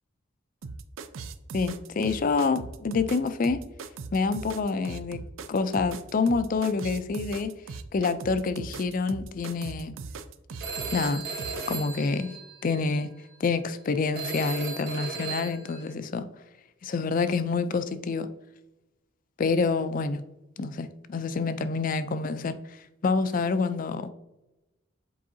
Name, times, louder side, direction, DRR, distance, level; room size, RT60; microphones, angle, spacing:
sound 1, 0.6-11.8, right 4 dB, 75° right, 0.4 m, -39 dB
voice 1, 1.5-3.6 4.1-5.2 5.5-7.5 7.9-9.9 10.9-11.3 11.7-13.1 13.4-16.3 16.8-18.3 19.4-20.3 20.6-22.6 23.0-24.1, left 4 dB, 40° left, 0.4 m, -27 dB
Telephone, 10.6-12.9 14.1-15.9, right 4 dB, 55° right, 1.2 m, -36 dB
7.6 x 4.6 x 2.7 m
head